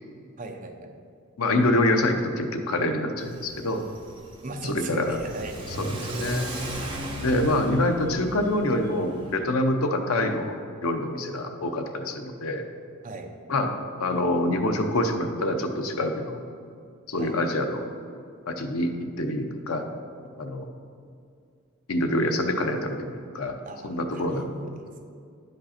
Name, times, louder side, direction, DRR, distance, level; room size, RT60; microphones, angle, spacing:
voice 1, 0.4-0.9 4.4-5.7 13.0-13.3 17.2-17.3 23.6-25.0, right 2 dB, 40° right, 4 dB, 0.6 m, -38 dB
voice 2, 1.4-3.8 4.6-5.2 5.8-6.5 7.2-10.5 10.8-12.6 13.5-13.7 14.0-16.4 17.1-17.8 18.5-18.9 19.2-19.8 20.4-20.7 21.9-23.5 23.8-24.4, left 1 dB, 80° left, 5 dB, 0.7 m, -26 dB
Car / Accelerating revving vroom, 3.2-9.4, right 1 dB, 25° right, 1.0 m, -36 dB
10.5 x 5.2 x 4.3 m, 2.3 s
head